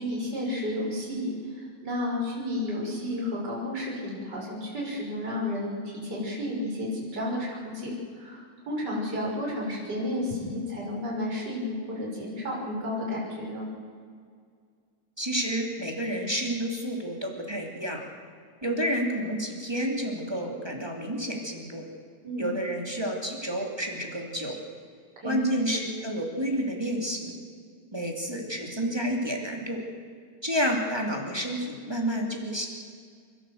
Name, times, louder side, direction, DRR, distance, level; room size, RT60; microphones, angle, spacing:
voice 1, 0.0-13.7 22.2-22.5 25.2-25.4, left 1 dB, 30° right, -4 dB, 6.5 m, -32 dB
voice 2, 15.2-18.0 18.6-21.8 22.4-24.6 25.2-27.3 27.9-29.8 30.4-32.7, equal, 10° right, 0 dB, 2.3 m, -30 dB
30.0 x 12.5 x 7.9 m, 2.1 s
omnidirectional pair, 3.9 m